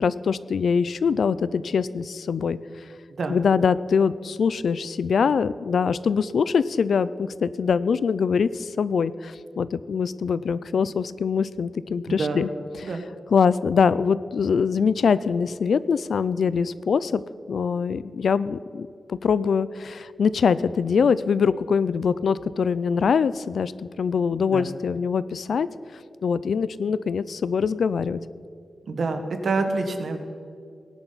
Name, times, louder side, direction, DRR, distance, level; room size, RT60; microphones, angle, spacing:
voice 1, 0.0-2.6 3.3-12.5 12.8-12.9 13.3-17.2 17.5-25.7 26.2-28.2, left 6 dB, 65° left, 17 dB, 0.4 m, -23 dB
voice 2, 12.1-12.5 12.8-13.1 24.5-24.7 28.9-30.2, right 3 dB, 60° right, 5 dB, 1.4 m, -27 dB
19.0 x 10.5 x 4.1 m, 2.4 s
wide cardioid pair, 165°, 0 cm